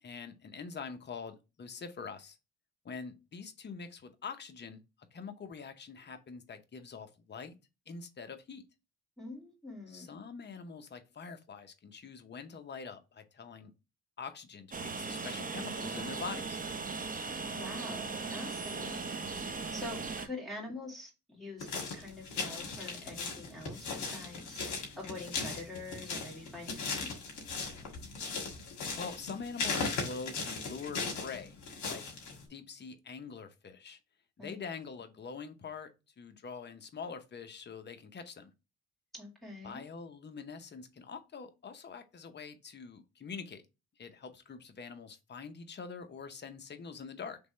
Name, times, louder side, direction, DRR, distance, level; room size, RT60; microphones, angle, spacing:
voice 1, 0.0-2.4 2.8-4.8 5.1-7.6 7.9-8.6 9.9-13.7 14.2-16.6 29.0-31.6 31.8-32.0 32.5-34.0 34.4-35.9 36.2-38.5 39.6-43.6 44.0-47.4, left 5 dB, 35° left, 0.8 m, -44 dB
voice 2, 9.2-10.1 17.5-24.6 25.0-27.4 34.4-34.7 39.1-39.8, left 2 dB, ahead, 2.2 m, -45 dB
Train, 14.7-20.3, right 4 dB, 30° right, 0.8 m, -38 dB
sound 1, 21.6-32.4, left 4 dB, 70° left, 1.5 m, -38 dB
3.5 x 3.1 x 4.2 m
cardioid pair, 90°, 30 cm